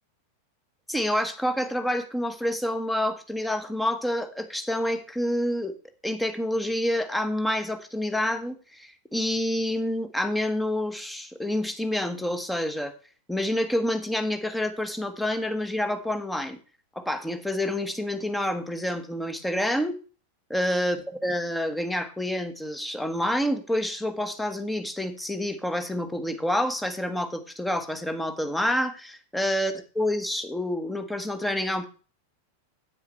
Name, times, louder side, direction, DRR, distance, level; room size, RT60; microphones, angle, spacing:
voice 1, 0.9-5.7 6.0-12.9 13.3-16.6 16.9-20.0 20.5-31.9, left 1 dB, 5° left, 9 dB, 1.3 m, -28 dB
9.7 x 8.7 x 4.5 m, 0.37 s
figure-of-eight pair, 90°, 0 cm